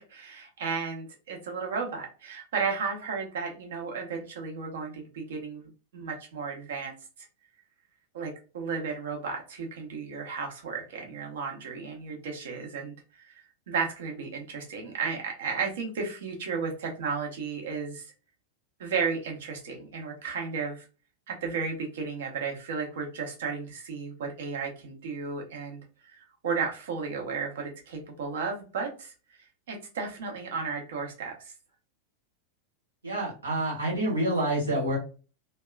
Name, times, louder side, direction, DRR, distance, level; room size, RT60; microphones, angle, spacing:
voice 1, 0.0-5.7 5.9-6.9 8.1-18.1 18.8-20.9 21.3-26.2 26.4-29.1 29.7-31.5, right 5 dB, 60° right, 1 dB, 0.8 m, -34 dB
voice 2, 33.0-35.0, right 1 dB, 75° right, -4 dB, 1.1 m, -27 dB
2.8 x 2.3 x 2.3 m, 0.35 s
figure-of-eight pair, 90°, 0 cm